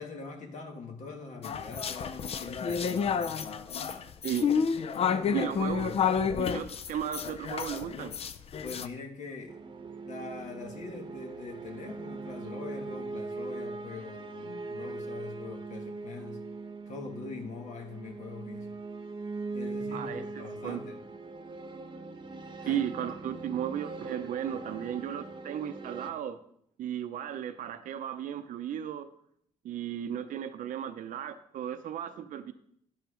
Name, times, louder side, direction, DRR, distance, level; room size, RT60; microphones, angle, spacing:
voice 1, 0.0-3.5 5.0-6.2 8.6-9.6 10.0-16.5 16.9-18.7 19.5-21.0 22.6-22.8, left 4 dB, 65° left, 1.6 m, -43 dB
sound 1, 1.4-8.9, left 6 dB, 50° left, 0.6 m, -30 dB
voice 2, 5.3-6.0 6.3-8.1 19.9-20.8 22.6-26.4 26.8-29.1 29.6-32.5, right 10 dB, 75° right, 0.7 m, -35 dB
sound 2, 9.5-26.1, right 3 dB, 35° right, 0.9 m, -41 dB
11.0 x 6.4 x 5.0 m
cardioid pair, 110°, 13 cm